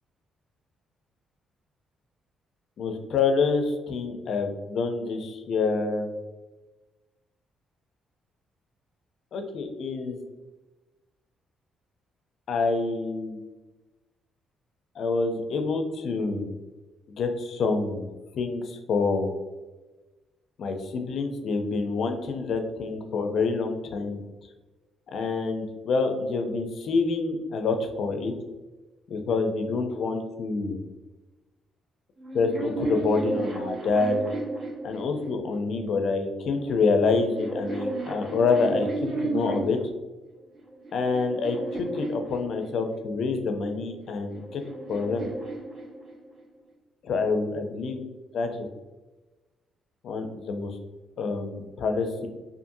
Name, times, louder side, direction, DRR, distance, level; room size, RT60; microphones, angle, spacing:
voice 1, 2.8-6.1 9.3-10.2 12.5-13.4 15.0-16.5 17.1-19.3 20.6-24.2 25.1-28.3 29.1-30.8 32.3-34.2 34.8-39.8 40.9-44.6 44.9-45.3 47.0-48.0 48.3-48.7 50.0-50.8 51.2-52.3, left 4 dB, 65° left, 5 dB, 0.4 m, -27 dB
sound 1, 32.2-35.6 36.5-39.9 40.6-43.0 44.0-46.4, right 2 dB, 40° right, 0.8 m, -33 dB
2.6 x 2.5 x 2.6 m, 1.2 s
cardioid pair, 90°, 0 cm